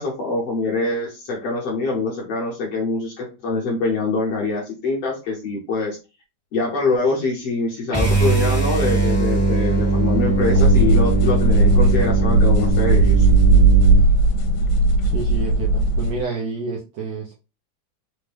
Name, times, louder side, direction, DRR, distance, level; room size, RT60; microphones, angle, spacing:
voice 1, 0.0-6.0 6.5-13.2, left 3 dB, 65° left, -3 dB, 1.7 m, -24 dB
sound 1, 7.9-14.1, right 3 dB, 10° left, 0.7 m, -21 dB
sound 2, 10.2-16.2, right 3 dB, 80° left, 2.2 m, -16 dB
voice 2, 15.1-17.3, right 4 dB, 75° right, -2 dB, 1.6 m, -29 dB
5.1 x 2.2 x 3.3 m, 0.30 s
omnidirectional pair, 3.8 m